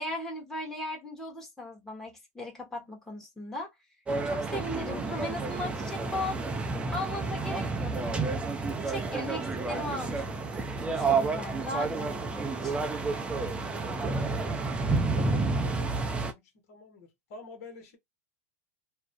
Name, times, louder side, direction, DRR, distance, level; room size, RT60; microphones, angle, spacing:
voice 1, 0.0-3.7 4.2-6.4 6.9-8.4 8.8-10.6 10.9-12.7, left 1 dB, 5° left, 1.0 m, -37 dB
sound 1, 4.1-16.3, right 3 dB, 15° right, 0.5 m, -30 dB
voice 2, 14.4-18.0, left 4 dB, 65° left, 1.1 m, -49 dB
2.4 x 2.1 x 2.6 m
hypercardioid pair, 120°, 9 cm